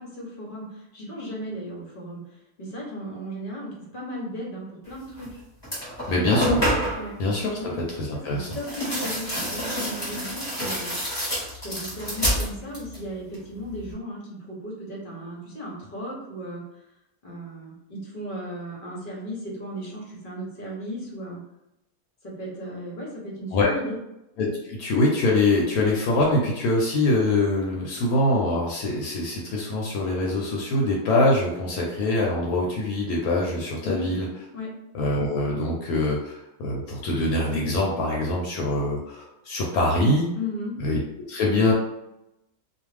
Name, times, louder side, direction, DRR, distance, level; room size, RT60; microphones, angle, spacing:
voice 1, 0.0-5.4 6.9-7.2 7.6-7.8 8.1-16.6 17.2-21.4 22.2-24.0 33.8-34.2 34.5-34.7 40.3-40.8, equal, 45° left, -3 dB, 0.8 m, -36 dB
sound 1, 5.2-5.3 5.6-7.1 8.5-13.0 13.3-13.9, equal, 20° left, 1.1 m, -28 dB
voice 2, 6.1-6.6 7.2-7.6 8.0-8.5 23.5-23.7 24.4-34.3 34.9-40.3 40.8-41.0 41.3-41.7, left 2 dB, 75° left, -2 dB, 1.1 m, -24 dB
2.4 x 2.4 x 3.2 m, 0.89 s
omnidirectional pair, 1.6 m